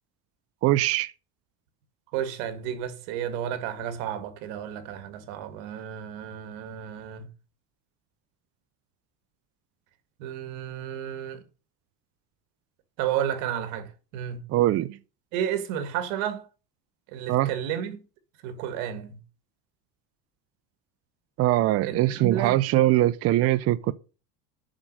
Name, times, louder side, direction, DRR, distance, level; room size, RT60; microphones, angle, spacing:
voice 1, 0.6-1.1 14.5-15.0 17.3-17.5 21.4-23.9, right 15 dB, 35° right, 0.4 m, -22 dB
voice 2, 2.1-7.3 10.2-11.4 13.0-14.4 15.3-16.5 17.1-18.0 18.4-19.2 21.9-22.6, right 10 dB, 90° right, 2.0 m, -32 dB
7.4 x 6.2 x 7.6 m
cardioid pair, 155°, 42 cm